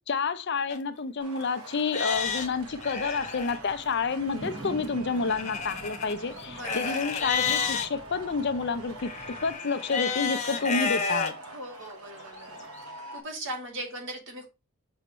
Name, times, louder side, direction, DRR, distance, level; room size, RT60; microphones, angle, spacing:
voice 1, 0.1-9.1 9.4-11.3, left 4 dB, 50° left, 0.5 m, -29 dB
Livestock farm animals working animals, 0.7-0.8 1.4-1.5 1.9-3.6 5.3-7.9 9.0-11.3 11.9-12.0 12.6-12.7, left 5 dB, 30° left, 1.0 m, -31 dB
sound 1, 1.2-13.2, right 2 dB, 80° right, 1.3 m, -45 dB
sound 2, 2.1-9.5, right 1 dB, 30° right, 3.9 m, -46 dB
voice 2, 6.5-7.0 11.5-12.7 13.1-14.5, right 1 dB, 55° right, 2.3 m, -39 dB
6.8 x 5.5 x 3.1 m
head